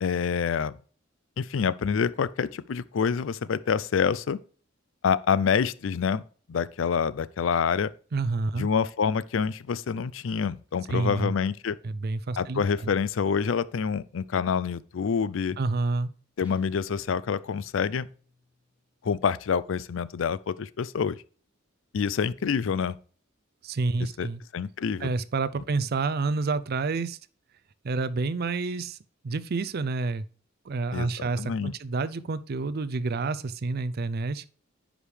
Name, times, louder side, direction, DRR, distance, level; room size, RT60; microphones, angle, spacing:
voice 1, 0.0-0.7 1.4-4.4 5.0-6.2 6.5-7.9 8.6-11.8 12.4-15.6 16.4-18.1 19.0-21.2 21.9-23.0 24.2-24.3 24.5-25.1 30.9-31.1 31.4-31.7, left 6 dB, 70° left, 0.4 m, -27 dB
voice 2, 8.1-8.7 10.9-11.3 11.8-12.9 15.6-16.1 23.6-24.4 25.0-27.2 27.8-29.0 29.2-30.2 30.7-34.4, right 3 dB, 50° right, 0.5 m, -29 dB
Guitar, 16.4-19.0, left 1 dB, 5° right, 1.8 m, -59 dB
10.0 x 5.0 x 3.3 m
head